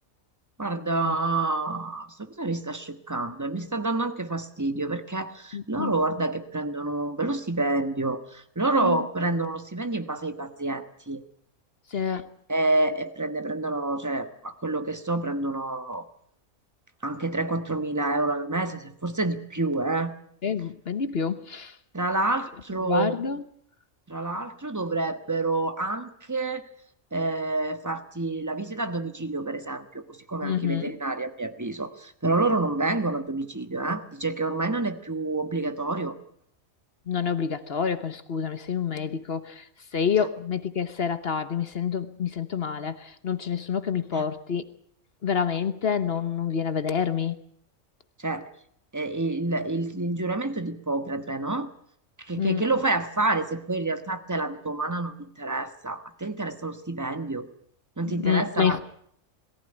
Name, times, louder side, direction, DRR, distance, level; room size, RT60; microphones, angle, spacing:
voice 1, 0.6-11.2 12.5-16.0 17.0-20.1 21.9-23.2 24.1-26.7 27.1-36.2 44.1-44.2 48.2-48.5 48.9-51.7 52.2-57.5 58.0-58.8, right 2 dB, 15° right, 9 dB, 1.4 m, -28 dB
voice 2, 5.5-5.9 8.8-9.0 11.9-12.3 20.4-21.8 22.9-23.4 30.4-31.0 37.1-39.7 39.9-44.6 45.2-47.4 52.4-52.6 58.1-58.8, left 7 dB, 50° left, 13 dB, 1.2 m, -28 dB
21.5 x 15.0 x 10.0 m, 0.68 s
omnidirectional pair, 1.4 m